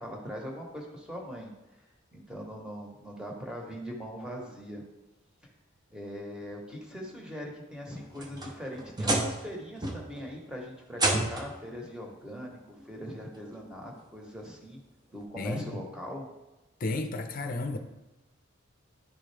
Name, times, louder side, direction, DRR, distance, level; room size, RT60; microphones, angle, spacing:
voice 1, 0.0-1.5 2.1-4.8 5.9-14.8 15.1-16.3, equal, 5° right, -1 dB, 1.1 m, -41 dB
sound 1, 7.9-9.5 9.8-10.3 10.9-11.6 12.8-12.9 13.5-13.6 15.2-15.3, right 1 dB, 20° right, 0.7 m, -30 dB
voice 2, 15.4-15.8 16.8-17.8, left 2 dB, 45° left, 7 dB, 0.6 m, -32 dB
10.5 x 3.7 x 3.3 m, 1.0 s
head